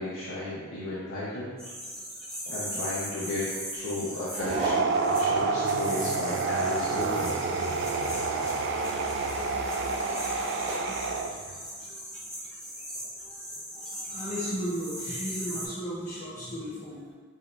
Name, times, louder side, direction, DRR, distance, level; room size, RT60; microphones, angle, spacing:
voice 1, 0.0-1.6 2.5-7.4 8.3-8.5, left 1 dB, 80° left, -9 dB, 0.9 m, -34 dB
sound 1, 1.6-15.7, equal, 5° left, 1.0 m, -39 dB
sound 2, 4.3-4.8 6.2-10.8, right 1 dB, 30° right, 0.8 m, -38 dB
sound 3, 4.4-11.6, right 4 dB, 55° right, 0.3 m, -29 dB
voice 2, 13.7-17.0, equal, 40° left, -12 dB, 1.2 m, -36 dB
5.5 x 3.3 x 2.5 m, 1.5 s
head